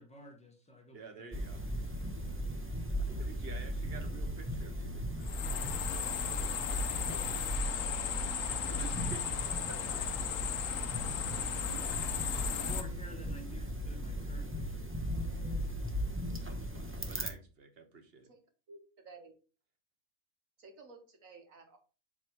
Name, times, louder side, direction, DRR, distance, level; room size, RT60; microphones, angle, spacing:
voice 1, 0.0-1.3 12.5-14.9, left 1 dB, 5° left, 2 dB, 1.2 m, -50 dB
voice 2, 0.9-1.6 3.1-5.3 6.7-7.9 8.7-10.0 11.4-12.6 16.4-18.3, right 4 dB, 50° right, 6 dB, 1.2 m, -51 dB
sound 1, 1.3-17.3, equal, 15° right, 0.6 m, -37 dB
sound 2, 5.2-12.8, left 8 dB, 80° left, 1.1 m, -36 dB
voice 3, 18.7-19.3 20.6-21.8, right 3 dB, 85° right, 4 dB, 1.8 m, -54 dB
7.3 x 3.1 x 4.6 m, 0.36 s
omnidirectional pair, 1.4 m